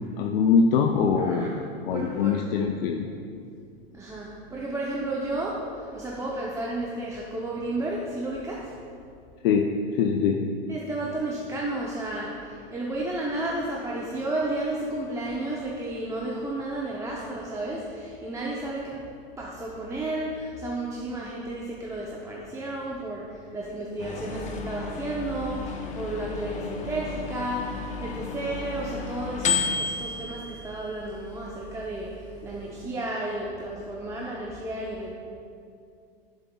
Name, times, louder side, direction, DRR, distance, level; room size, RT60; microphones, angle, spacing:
voice 1, 0.0-1.6 1.9-3.1 9.4-10.4, left 5 dB, 65° left, 2 dB, 0.6 m, -23 dB
voice 2, 1.2-1.5 1.9-2.4 3.9-8.8 10.7-19.1 19.4-35.1, right 2 dB, 10° right, -4 dB, 0.7 m, -32 dB
sound 1, 24.0-32.9, left 5 dB, 25° left, 0.7 m, -33 dB
11.0 x 7.0 x 2.3 m, 2.4 s
hypercardioid pair, 115°, 30 cm